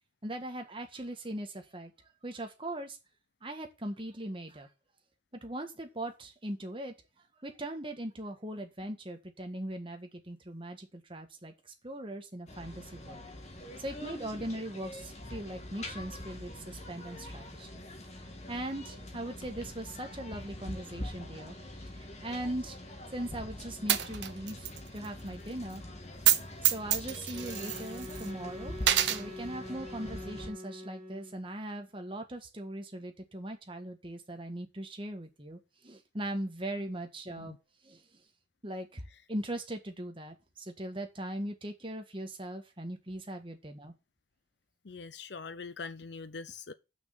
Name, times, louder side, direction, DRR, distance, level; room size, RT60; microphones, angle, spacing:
voice 1, 0.2-1.9 2.2-3.0 3.4-4.7 5.4-6.9 7.4-11.5 11.8-13.3 13.8-17.8 18.5-21.5 21.8-22.8 23.1-25.8 26.6-37.5 37.8-38.0 38.6-39.0 39.3-43.9, right 1 dB, 30° right, 1.7 m, -40 dB
sound 1, 12.5-30.5, left 1 dB, 35° left, 1.9 m, -44 dB
Coin (dropping), 23.9-24.8 25.0-25.1 26.1-26.4 26.6-28.3 28.8-29.2, right 12 dB, 65° right, 0.8 m, -27 dB
Wind instrument woodwind instrument, 27.3-31.5, left 1 dB, 5° left, 2.4 m, -45 dB
voice 2, 44.8-46.7, left 4 dB, 65° left, 0.7 m, -43 dB
6.4 x 6.0 x 7.3 m
head